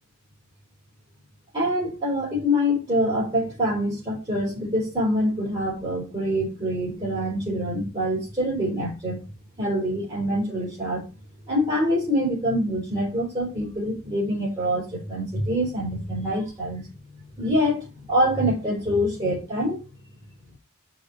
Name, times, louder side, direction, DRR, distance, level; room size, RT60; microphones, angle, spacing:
voice 1, 1.5-9.2 9.6-11.0 11.5-16.8 17.4-19.8, equal, 25° right, 4.4 m, -25 dB
6.6 x 5.2 x 7.0 m
head